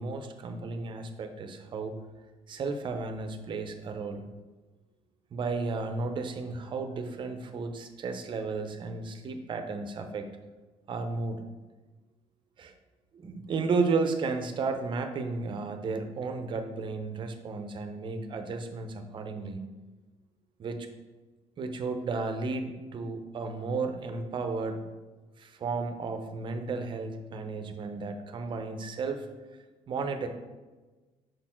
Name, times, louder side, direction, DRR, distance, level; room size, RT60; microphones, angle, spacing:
voice 1, 0.0-1.9 2.5-4.3 5.3-10.3 10.9-11.4 12.6-12.7 13.1-19.6 20.6-20.9 21.6-24.8 25.4-29.3 29.9-30.3, right 4 dB, 40° right, 7 dB, 0.7 m, -33 dB
6.5 x 4.2 x 4.4 m, 1.2 s
cardioid pair, 120°, 12 cm